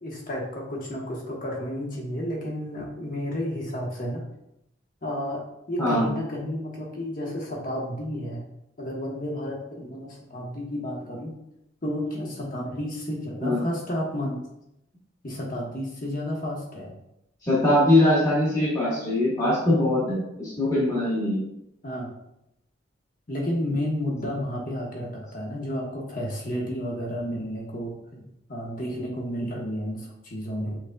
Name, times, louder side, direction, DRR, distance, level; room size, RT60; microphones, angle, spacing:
voice 1, 0.0-4.3 5.0-8.4 8.8-11.3 11.8-14.4 15.2-16.9 21.8-22.1 23.3-30.8, equal, 45° left, -2 dB, 1.1 m, -31 dB
voice 2, 17.4-21.4, left 1 dB, 20° left, -8 dB, 1.4 m, -22 dB
6.0 x 3.9 x 2.3 m, 0.82 s
head